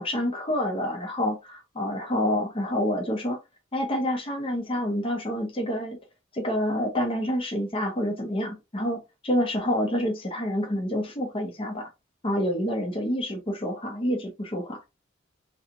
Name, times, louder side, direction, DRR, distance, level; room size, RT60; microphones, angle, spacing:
voice 1, 0.0-3.4 3.7-6.0 6.3-11.9 12.2-14.8, equal, 25° left, 0.8 m, -28 dB
3.1 x 2.9 x 2.6 m
head